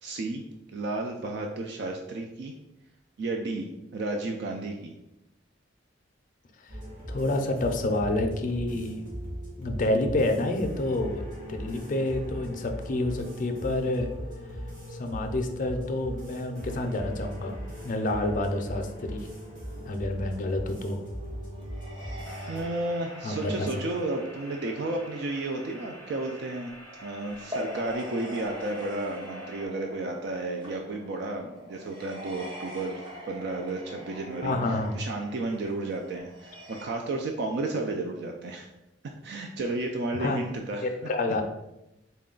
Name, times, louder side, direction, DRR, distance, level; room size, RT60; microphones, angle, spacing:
voice 1, 0.0-0.4 0.7-2.5 3.2-4.9 22.5-26.7 27.0-33.0 33.3-38.7 39.0-40.9, right 2 dB, 60° right, 3 dB, 0.3 m, -32 dB
sound 1, 6.7-22.6, equal, 45° right, 1.5 m, -39 dB
voice 2, 7.1-9.0 9.6-11.2 11.5-14.1 14.9-17.6 17.8-19.3 19.9-21.0 23.2-23.5 34.4-35.0 40.2-40.4 40.8-41.4, left 2 dB, 45° left, 5 dB, 0.4 m, -28 dB
sound 2, 19.1-19.2 20.0-20.1 20.4-36.8, equal, 25° right, 0.7 m, -44 dB
sound 3, 22.2-29.7, equal, 90° right, 1.0 m, -48 dB
4.1 x 2.2 x 3.7 m, 0.91 s
head